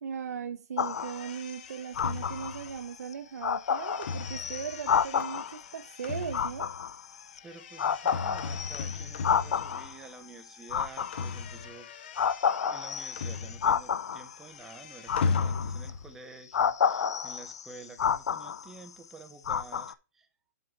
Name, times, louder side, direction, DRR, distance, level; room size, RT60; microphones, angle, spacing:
voice 1, 0.0-6.7, right 7 dB, 75° right, 0.7 m, -38 dB
sound 1, 0.8-1.3 1.9-2.7 3.1-3.2 3.4-5.6 6.3-7.4 7.8-10.0 10.6-11.6 12.2-14.3 15.1-15.9 16.5-18.9 19.4-19.9, left 7 dB, 85° left, 0.6 m, -30 dB
sound 2, 1.0-10.3 10.5-14.0 14.2-16.1, left 5 dB, 40° left, 0.8 m, -38 dB
voice 2, 7.4-11.9 12.7-20.3, right 4 dB, 5° right, 0.5 m, -50 dB
7.8 x 3.7 x 5.9 m
hypercardioid pair, 175°, 9 cm